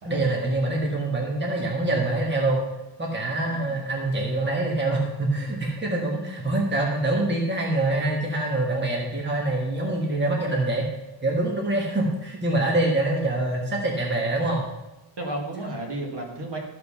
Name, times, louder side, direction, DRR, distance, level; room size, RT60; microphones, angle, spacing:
voice 1, 0.0-2.6 3.0-10.8 11.2-14.7, right 2 dB, 20° right, -1 dB, 1.4 m, -25 dB
voice 2, 15.2-16.6, right 1 dB, 55° right, 0 dB, 2.1 m, -33 dB
13.5 x 5.2 x 5.6 m, 0.98 s
wide cardioid pair, 175°, 48 cm